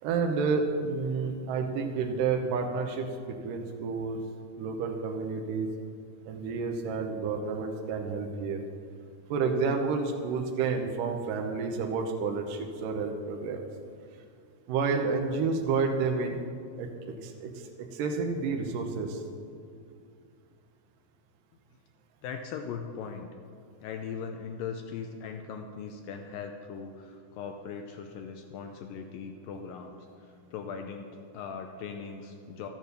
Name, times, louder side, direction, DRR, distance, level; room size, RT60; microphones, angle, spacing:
voice 1, 0.0-4.2 4.6-5.7 6.3-8.6 9.3-13.6 14.7-16.4 16.8-16.9 17.2-19.2, right 4 dB, 75° right, 2 dB, 2.1 m, -30 dB
voice 2, 22.2-23.3 23.8-32.7, left 6 dB, 80° left, 5 dB, 2.0 m, -39 dB
13.0 x 9.2 x 6.8 m, 2.4 s
omnidirectional pair, 4.7 m